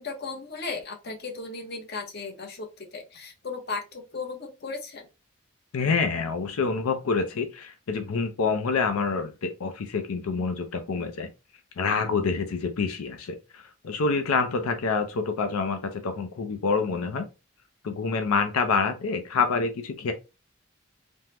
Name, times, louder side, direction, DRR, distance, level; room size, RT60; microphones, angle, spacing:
voice 1, 0.0-5.1, left 4 dB, 50° left, 0.7 m, -36 dB
voice 2, 5.7-11.3 11.8-17.3 17.8-20.1, left 4 dB, 90° left, 0.5 m, -27 dB
3.5 x 2.0 x 2.9 m
head